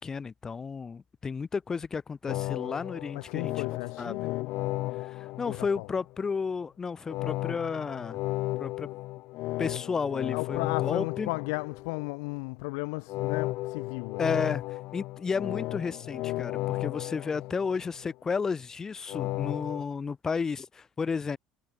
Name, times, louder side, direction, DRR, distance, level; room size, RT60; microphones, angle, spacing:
voice 1, 0.0-3.5 4.0-4.2 5.0-8.2 8.6-8.9 9.6-11.3 14.2-21.4, left 5 dB, 25° left, 3.6 m, -32 dB
sound 1, 2.3-6.1 7.1-12.1 13.1-18.1 19.1-19.8, left 19 dB, 65° left, 1.3 m, -34 dB
voice 2, 3.1-4.5 5.4-5.9 10.3-14.4, left 32 dB, 90° left, 2.3 m, -35 dB
cardioid pair, 125°, 2 cm